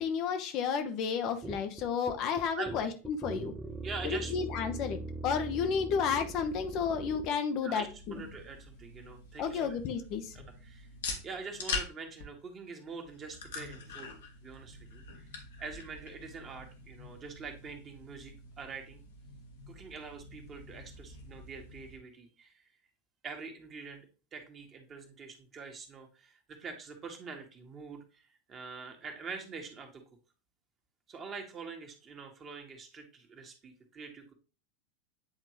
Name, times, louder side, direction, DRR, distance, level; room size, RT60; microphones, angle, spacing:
voice 1, 0.0-3.5 4.0-8.2 9.4-10.4, left 6 dB, 45° left, 7 dB, 0.8 m, -32 dB
sound 1, 1.4-7.3, right 2 dB, 10° right, 0.9 m, -41 dB
voice 2, 3.8-4.3 7.6-9.8 10.3-10.9 11.2-15.3 15.6-19.0 19.7-22.7 23.2-30.0 31.1-34.3, right 4 dB, 30° right, 3 dB, 1.6 m, -45 dB
sound 2, 7.7-22.0, left 4 dB, 70° left, 1.4 m, -44 dB
8.9 x 3.7 x 3.2 m, 0.33 s
figure-of-eight pair, 85°, 0 cm